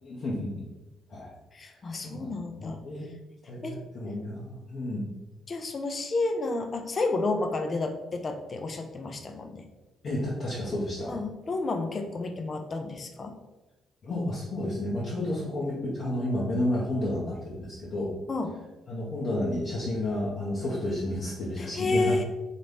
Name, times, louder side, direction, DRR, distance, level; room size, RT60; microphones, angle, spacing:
voice 1, 0.0-0.6 1.1-1.3 1.7-2.3 2.6-3.1 3.5-5.1 10.0-11.2 14.0-18.1 18.9-22.2, left 1 dB, 55° left, -6 dB, 0.9 m, -31 dB
voice 2, 1.5-2.8 3.6-3.8 5.5-9.6 11.1-13.3 18.3-18.6 21.6-22.2, left 3 dB, 40° left, 5 dB, 0.5 m, -30 dB
4.1 x 3.1 x 3.4 m, 1.1 s
cardioid pair, 90°, 0 cm